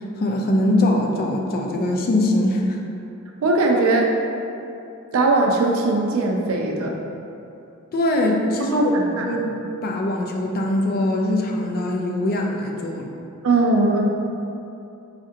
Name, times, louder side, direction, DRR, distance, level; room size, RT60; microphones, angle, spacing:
voice 1, 0.2-2.8 7.9-13.1, left 1 dB, 45° left, 1 dB, 0.4 m, -22 dB
voice 2, 3.4-4.1 5.1-6.9 8.7-9.4 13.4-14.0, right 2 dB, 85° right, 1 dB, 0.4 m, -19 dB
4.2 x 2.5 x 2.6 m, 2.8 s
head